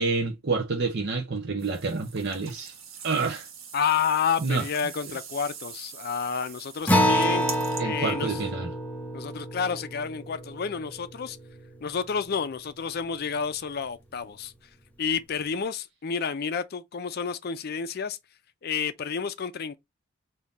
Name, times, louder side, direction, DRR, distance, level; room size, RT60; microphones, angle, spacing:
voice 1, 0.0-2.7 3.0-3.5 4.4-4.6 7.8-8.7, right 4 dB, 55° right, 0.8 m, -28 dB
sound 1, 1.6-7.8, right 7 dB, 85° right, 1.1 m, -43 dB
voice 2, 3.7-7.5 7.8-8.4 9.1-11.4 11.8-14.5 15.0-18.2 18.6-19.8, left 6 dB, 50° left, 0.5 m, -30 dB
Acoustic guitar, 6.9-11.8, equal, 10° left, 0.7 m, -28 dB
3.6 x 2.8 x 3.9 m
head